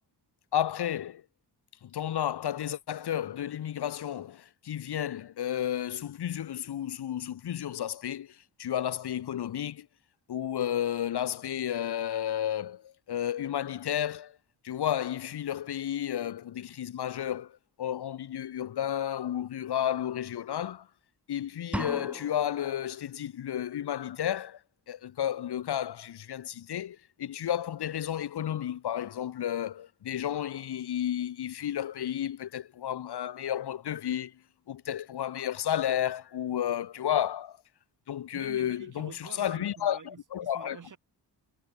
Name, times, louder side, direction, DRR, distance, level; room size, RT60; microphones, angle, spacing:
voice 1, 0.5-1.2 1.8-9.9 10.3-14.4 14.6-20.9 21.3-24.6 24.9-34.3 34.7-37.6 38.1-40.8, left 10 dB, 70° left, 1.7 m, -32 dB
sound 1, 21.7-22.7, right 1 dB, 5° right, 1.1 m, -36 dB
voice 2, 38.3-41.0, right 6 dB, 45° right, 5.9 m, -48 dB
wide cardioid pair, 135°, 41 cm